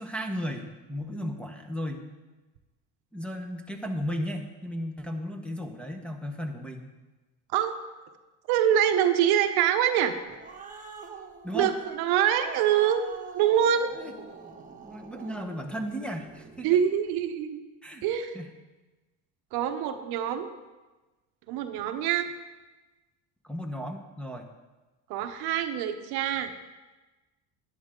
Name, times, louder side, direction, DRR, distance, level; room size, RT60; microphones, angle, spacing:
voice 1, 0.0-2.1 3.1-6.9 11.4-11.7 13.9-14.1 14.7-16.7 17.8-18.0 18.3-18.5 23.4-24.5, equal, 5° left, 1 dB, 1.1 m, -35 dB
voice 2, 8.5-10.1 11.5-13.0 13.3-13.9 16.6-17.6 18.0-18.4 19.5-20.5 21.5-22.3 25.1-26.5, right 9 dB, 70° right, 8 dB, 1.0 m, -25 dB
Growling, 10.0-16.8, right 5 dB, 20° right, 1.4 m, -46 dB
11.0 x 10.5 x 3.8 m, 1.2 s
supercardioid pair, 105°, 40 cm